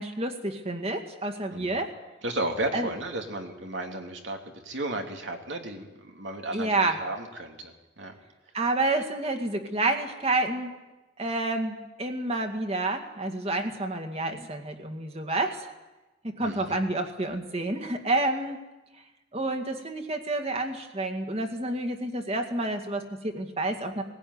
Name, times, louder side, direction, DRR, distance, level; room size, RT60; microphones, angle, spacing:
voice 1, 0.0-1.9 2.7-2.9 6.5-7.0 8.5-10.7 11.2-15.7 16.2-18.6 19.3-24.0, right 2 dB, 35° right, 5 dB, 2.1 m, -29 dB
voice 2, 2.2-8.1 16.4-16.8, right 1 dB, 80° right, 3 dB, 2.8 m, -34 dB
19.5 x 16.0 x 9.6 m, 1.1 s
head